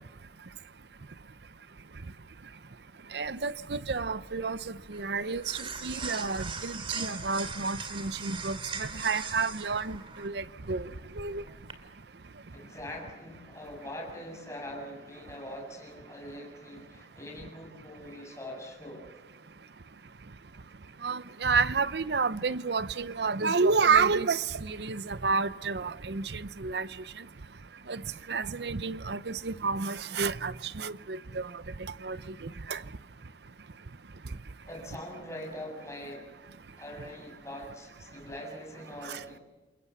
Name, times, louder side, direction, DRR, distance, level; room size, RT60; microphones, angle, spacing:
voice 1, 3.1-10.9 11.2-11.4 21.0-26.9 27.9-28.0 28.3-31.5 32.0-32.2 32.7-32.8 39.1-39.2, right 4 dB, 65° right, 0.7 m, -30 dB
sound 1, 3.2-11.7, right 5 dB, 30° right, 2.5 m, -41 dB
voice 2, 12.5-19.1 34.7-36.3 36.8-39.4, left 1 dB, 15° left, 7.2 m, -43 dB
29.0 x 22.5 x 7.2 m
head